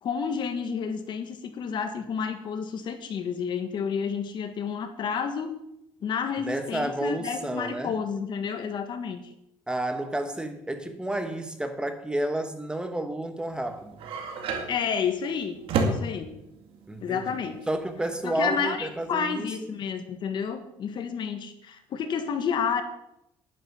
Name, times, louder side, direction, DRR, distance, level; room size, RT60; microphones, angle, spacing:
voice 1, 0.0-5.6 6.0-9.2 14.7-16.3 17.0-17.6 18.2-22.8, left 6 dB, 55° left, 8 dB, 1.6 m, -30 dB
voice 2, 6.4-7.9 9.7-14.1 16.9-17.4 17.7-19.7, right 1 dB, 10° right, 8 dB, 1.2 m, -31 dB
sound 1, 13.5-19.1, right 3 dB, 70° right, 2.4 m, -32 dB
11.0 x 10.5 x 5.8 m, 0.83 s
cardioid pair, 125°, 10 cm